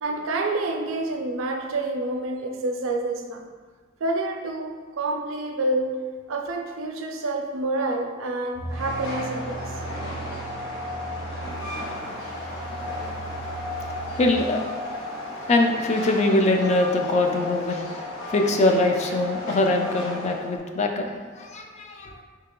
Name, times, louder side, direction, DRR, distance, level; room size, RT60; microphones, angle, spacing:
voice 1, 0.0-3.5 4.0-6.0 6.3-9.6, right 2 dB, 85° right, 3 dB, 0.5 m, -28 dB
sound 1, 8.5-14.3, right 2 dB, 85° left, 0.8 m, -38 dB
Train, 8.7-20.6, left 1 dB, 70° left, 1.1 m, -34 dB
voice 2, 11.5-12.8 13.8-15.0 15.4-22.2, left 2 dB, 35° left, 3 dB, 0.4 m, -24 dB
3.6 x 2.8 x 3.7 m, 1.5 s
head